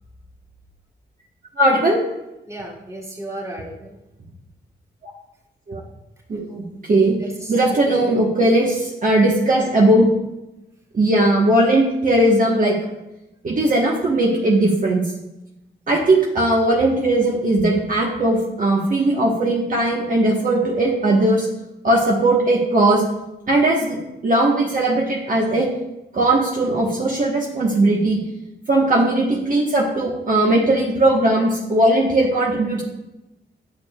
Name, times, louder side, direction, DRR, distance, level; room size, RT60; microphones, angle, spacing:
voice 1, 1.6-2.0 5.7-5.8 6.3-6.6 6.9-7.2 7.5-10.1 10.9-12.7 13.4-15.0 15.9-21.5 21.8-23.0 23.5-25.7 26.1-28.2 28.7-32.8, right 1 dB, 45° right, -3 dB, 1.2 m, -18 dB
voice 2, 2.5-3.9 7.4-8.0 8.3-8.4, right 1 dB, 15° right, -4 dB, 2.2 m, -34 dB
10.0 x 6.6 x 2.3 m, 0.94 s
cardioid pair, 90°, 19 cm